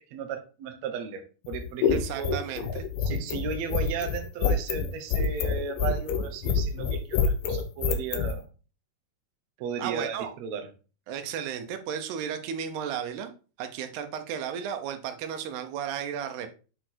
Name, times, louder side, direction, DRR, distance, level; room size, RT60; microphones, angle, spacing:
voice 1, 0.0-2.4 3.0-8.5 9.6-10.7, right 6 dB, 65° right, 5 dB, 1.8 m, -35 dB
sound 1, 1.4-8.3, left 6 dB, 70° left, 2.3 m, -26 dB
voice 2, 1.9-2.9 9.8-10.3 11.1-13.3 13.6-16.5, right 8 dB, 85° right, 7 dB, 3.0 m, -34 dB
9.0 x 4.4 x 4.4 m, 0.35 s
omnidirectional pair, 4.6 m